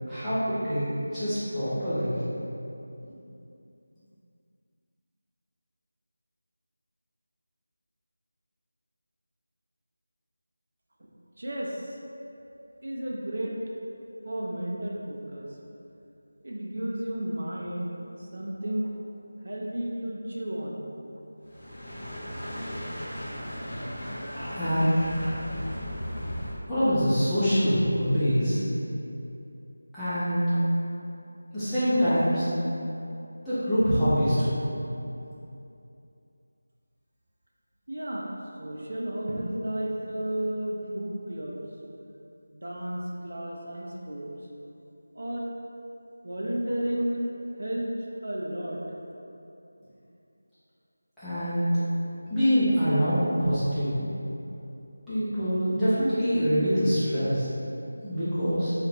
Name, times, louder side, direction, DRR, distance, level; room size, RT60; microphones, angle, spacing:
voice 1, 0.1-2.1 24.5-25.0 26.7-28.6 29.9-30.6 31.5-32.5 33.4-34.6 51.2-51.8 52.3-54.0 55.1-57.5 58.0-58.7, equal, ahead, -21 dB, 0.5 m, -25 dB
voice 2, 11.4-12.0 12.8-13.6 14.2-15.5 16.4-18.9 19.4-20.9 37.9-38.3 38.6-41.6 42.5-44.3 45.1-45.4 46.2-47.3 47.6-47.9 48.2-48.8, right 1 dB, 60° right, -3 dB, 0.4 m, -32 dB
sound 1, 21.4-26.6, equal, 25° left, 0.8 m, -36 dB
3.0 x 2.4 x 3.2 m, 2.8 s
figure-of-eight pair, 175°, 0 cm